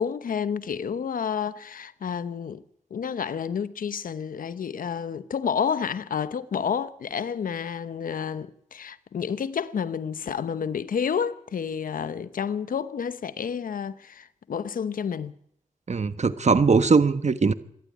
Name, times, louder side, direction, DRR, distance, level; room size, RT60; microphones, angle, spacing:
voice 1, 0.0-2.6 2.9-15.3, left 7 dB, 80° left, 1.0 m, -30 dB
voice 2, 15.9-17.5, right 4 dB, 55° right, 1.3 m, -20 dB
26.0 x 12.0 x 9.4 m
supercardioid pair, 40°, 14 cm